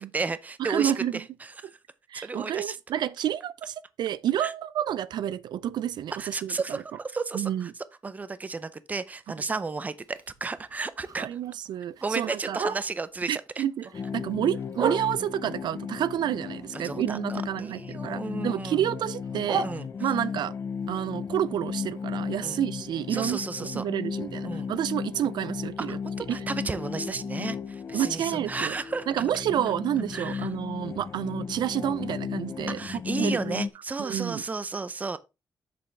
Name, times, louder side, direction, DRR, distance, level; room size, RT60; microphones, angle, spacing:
voice 1, 0.0-1.7 2.2-2.8 4.4-4.5 6.2-7.7 8.0-11.3 12.0-13.6 16.8-18.9 19.6-19.9 22.4-22.6 23.1-23.8 24.4-24.7 25.8-29.3 30.1-30.5 32.7-35.2, right 4 dB, 20° right, 0.6 m, -33 dB
voice 2, 0.6-1.1 2.1-6.8 7.3-7.7 11.2-12.6 13.3-13.9 14.1-19.7 20.0-20.5 20.9-26.0 26.3-26.4 27.9-28.7 29.1-32.8 33.2-33.6 34.0-34.4, right 11 dB, 80° right, 0.4 m, -29 dB
Bark, 10.0-13.2 13.6-15.5 16.0-17.8 18.1-20.4 20.8-24.8 25.1-25.2 25.5-25.9 26.3-26.4 26.8-26.9 27.4-27.5, right 5 dB, 55° right, 1.2 m, -38 dB
sound 1, 13.9-33.7, left 6 dB, 40° left, 0.6 m, -35 dB
7.8 x 6.9 x 3.3 m
wide cardioid pair, 160°, 7 cm